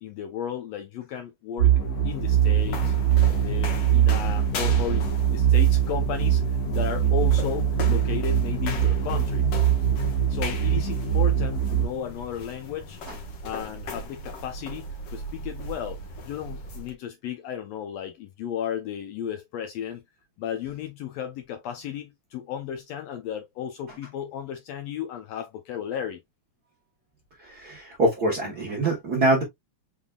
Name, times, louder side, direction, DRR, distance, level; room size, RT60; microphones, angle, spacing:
voice 1, 0.0-1.7 2.0-2.9 3.4-9.5 10.3-13.0 13.4-20.0 20.4-26.2, left 9 dB, 85° left, 1.4 m, -34 dB
sound 1, 1.6-16.9, left 1 dB, 60° left, 1.9 m, -38 dB
sound 2, 1.6-11.9, right 9 dB, 45° left, 1.3 m, -22 dB
voice 2, 27.4-29.4, right 2 dB, 70° right, 0.9 m, -24 dB
5.5 x 3.5 x 2.2 m
omnidirectional pair, 3.6 m